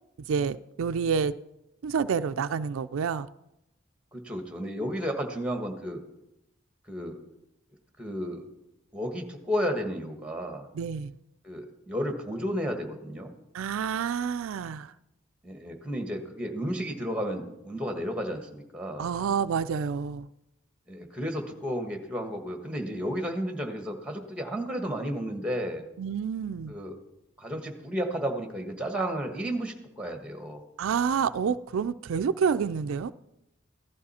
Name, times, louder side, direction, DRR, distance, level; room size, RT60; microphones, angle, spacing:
voice 1, 0.3-1.3 1.8-3.3 10.7-11.1 13.5-14.9 19.0-20.3 26.0-26.8 30.8-33.1, right 6 dB, 90° right, 12 dB, 0.4 m, -28 dB
voice 2, 4.1-6.0 6.9-7.2 8.0-8.5 8.9-10.7 11.4-13.3 15.4-19.1 20.9-25.9 26.7-26.9 27.4-30.6, equal, 5° right, 4 dB, 1.3 m, -32 dB
15.0 x 12.0 x 4.2 m, 0.88 s
head